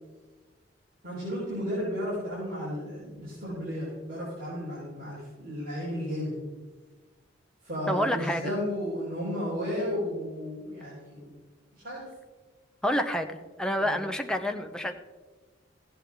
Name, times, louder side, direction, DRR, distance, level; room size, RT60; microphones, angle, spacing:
voice 1, 1.0-6.3 7.6-11.3 11.7-12.0 13.8-13.9, equal, 50° right, -9 dB, 4.2 m, -33 dB
voice 2, 7.9-8.5 12.8-15.0, equal, 5° left, 6 dB, 0.7 m, -28 dB
15.0 x 8.7 x 3.6 m, 1.3 s
head